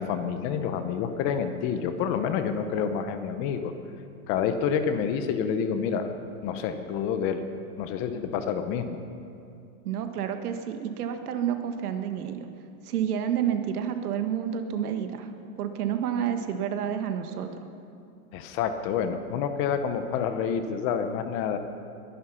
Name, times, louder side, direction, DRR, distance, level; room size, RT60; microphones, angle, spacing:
voice 1, 0.0-3.7 4.3-6.2 6.4-7.4 7.8-9.0 18.3-21.6, left 7 dB, 30° left, 9 dB, 0.8 m, -28 dB
voice 2, 9.8-12.5 12.8-15.3 15.6-17.5, right 9 dB, 75° right, 7 dB, 1.7 m, -29 dB
21.0 x 11.5 x 5.7 m, 2.5 s
supercardioid pair, 155°, 45 cm